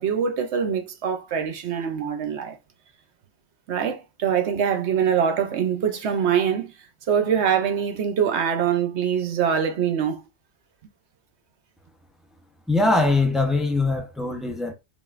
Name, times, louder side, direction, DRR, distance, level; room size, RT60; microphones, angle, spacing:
voice 1, 0.0-2.6 3.7-6.7 7.1-10.2, right 7 dB, 70° right, 0.9 m, -24 dB
voice 2, 12.7-14.7, left 2 dB, ahead, 0.6 m, -22 dB
5.1 x 2.5 x 2.4 m
omnidirectional pair, 1.2 m